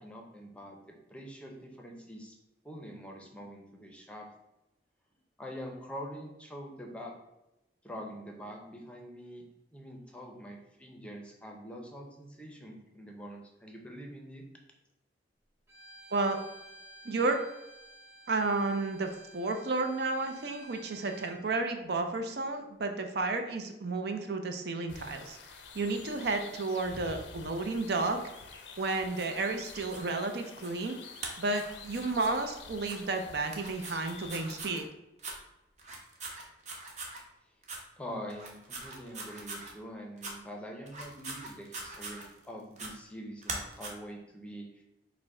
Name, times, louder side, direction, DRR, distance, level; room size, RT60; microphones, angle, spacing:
voice 1, 0.0-2.4 2.6-4.3 5.4-7.1 7.8-9.4 9.7-14.4 38.0-44.8, equal, 5° left, 1 dB, 0.6 m, -45 dB
Bowed string instrument, 15.7-21.4, right 2 dB, 15° right, 1.0 m, -53 dB
voice 2, 17.0-17.4 18.3-25.4 25.7-28.2 28.8-31.0 31.4-34.9, right 3 dB, 60° right, 5 dB, 0.5 m, -32 dB
sound 1, 24.9-34.6, left 5 dB, 90° left, 0.5 m, -49 dB
sound 2, 28.8-30.1 30.6-30.9 31.2-32.4 32.8-33.0 33.5-34.8 35.2-35.4 35.8-37.2 37.6-37.8 38.3-39.7 40.2-40.3 40.9-42.4 42.8-42.9 43.4-43.9, right 2 dB, 40° right, 0.8 m, -42 dB
4.9 x 2.1 x 4.7 m, 0.92 s
head